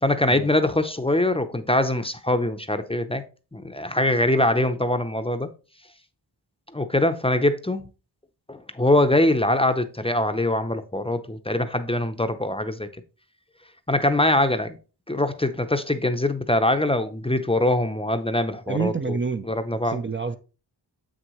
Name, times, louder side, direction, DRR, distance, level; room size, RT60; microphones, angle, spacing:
voice 1, 0.0-3.2 3.5-5.5 6.7-7.9 8.5-12.9 13.9-14.8 15.1-19.2 19.4-20.0, left 1 dB, 15° left, 0.6 m, -23 dB
voice 2, 18.7-19.5 19.8-20.4, right 4 dB, 30° right, 0.5 m, -27 dB
7.4 x 6.3 x 3.1 m
wide cardioid pair, 75°, 43 cm